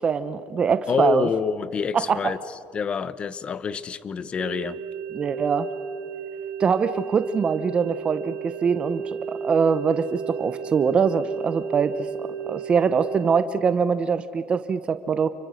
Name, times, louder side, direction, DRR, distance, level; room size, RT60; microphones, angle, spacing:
voice 1, 0.0-1.3 1.9-2.2 5.1-5.7 6.6-11.9 12.2-15.3, right 6 dB, 35° right, 12 dB, 0.9 m, -23 dB
voice 2, 0.9-2.4 2.7-4.8, left 6 dB, 35° left, 16 dB, 1.0 m, -27 dB
sound 1, 4.4-13.4, right 7 dB, 65° right, 1.0 m, -34 dB
28.5 x 23.5 x 6.5 m, 2.3 s
cardioid pair, 110°, 3 cm